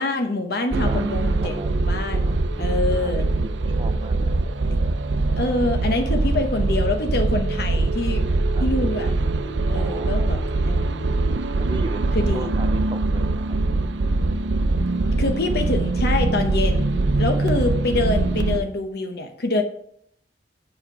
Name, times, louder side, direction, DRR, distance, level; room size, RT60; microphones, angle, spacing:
voice 1, 0.0-1.6 1.9-3.3 5.4-8.2 8.6-9.1 9.7-10.4 10.6-11.2 12.1-12.6 15.2-16.9 17.2-19.6, left 2 dB, 60° left, 6 dB, 0.9 m, -25 dB
voice 2, 0.7-1.8 2.2-4.4 8.5-8.7 9.7-10.3 11.7-13.5, right 3 dB, 25° right, 5 dB, 0.4 m, -37 dB
sound 1, 0.7-18.6, right 2 dB, 90° right, 0.6 m, -22 dB
7.5 x 7.2 x 4.7 m, 0.65 s
head